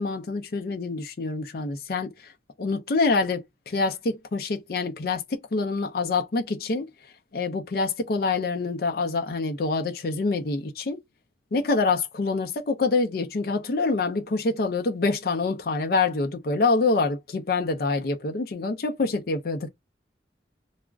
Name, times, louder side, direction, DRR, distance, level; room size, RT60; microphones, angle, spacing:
voice 1, 0.0-2.3 2.6-6.9 7.3-11.0 11.5-19.7, left 3 dB, 55° left, 0.4 m, -26 dB
2.3 x 2.0 x 3.3 m
head